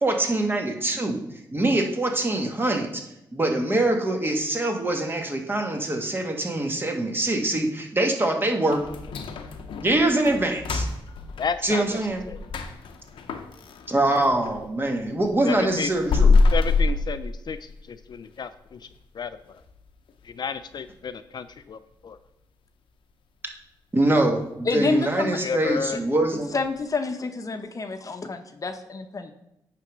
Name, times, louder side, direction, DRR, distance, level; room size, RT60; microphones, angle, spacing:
voice 1, 0.0-1.2 1.5-3.0 3.3-8.8 9.8-10.9 11.6-12.2 13.9-16.4 23.9-26.5, right 2 dB, 25° right, 3 dB, 1.5 m, -24 dB
sound 1, 8.7-14.6 15.0-17.9 18.2-18.3 18.8-18.9 19.4-19.8 20.1-20.2 20.7-20.8, left 3 dB, 90° left, 0.7 m, -25 dB
voice 2, 11.4-12.0 12.3-12.4 15.4-15.9 16.5-18.9 19.1-19.6 20.2-22.2 25.4-26.0, left 6 dB, 55° left, 12 dB, 0.4 m, -32 dB
voice 3, 24.6-25.4 26.3-29.3, left 3 dB, 40° left, 7 dB, 0.8 m, -28 dB
8.9 x 3.5 x 6.1 m, 0.86 s
cardioid pair, 70°, 8 cm